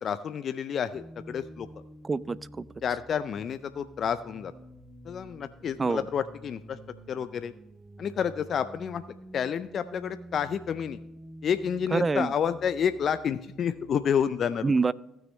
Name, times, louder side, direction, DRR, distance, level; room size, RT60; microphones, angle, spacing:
voice 1, 0.0-1.7 2.8-4.5 5.1-6.8 7.1-7.5 8.0-9.0 9.3-11.0 11.4-14.7, left 8 dB, 50° left, 13 dB, 0.4 m, -29 dB
sound 1, 0.9-14.3, equal, 5° right, 2.7 m, -49 dB
voice 2, 2.0-2.7 5.8-6.1 11.9-12.3 14.6-14.9, right 4 dB, 30° right, 20 dB, 0.4 m, -26 dB
15.5 x 6.4 x 3.1 m, 0.90 s
hypercardioid pair, 55°, 0 cm